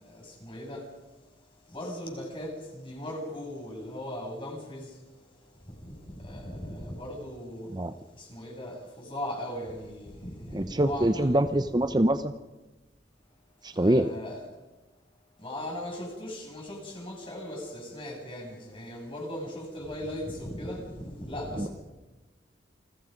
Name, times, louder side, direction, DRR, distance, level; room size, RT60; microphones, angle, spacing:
voice 1, 0.1-0.8 1.7-4.9 6.2-7.7 8.2-11.7 13.8-14.4 15.4-21.7, left 1 dB, 30° left, 0 dB, 7.0 m, -38 dB
voice 2, 10.5-12.3 13.6-14.1 21.6-21.7, right 1 dB, 25° right, 10 dB, 0.8 m, -24 dB
29.0 x 21.0 x 5.3 m, 1.1 s
head